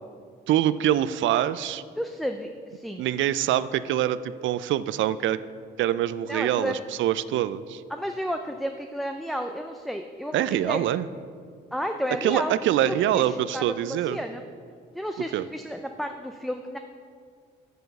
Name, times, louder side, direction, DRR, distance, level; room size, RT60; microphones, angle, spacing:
voice 1, 0.5-1.8 3.0-5.4 5.8-7.8 10.3-11.1 12.2-14.2 15.3-15.5, right 12 dB, 75° right, 15 dB, 0.4 m, -24 dB
voice 2, 2.0-3.0 6.3-6.8 7.9-10.9 11.7-12.5 12.8-14.4 14.9-16.8, equal, ahead, 5 dB, 0.4 m, -32 dB
6.8 x 6.2 x 6.7 m, 2.1 s
cardioid pair, 90°, 20 cm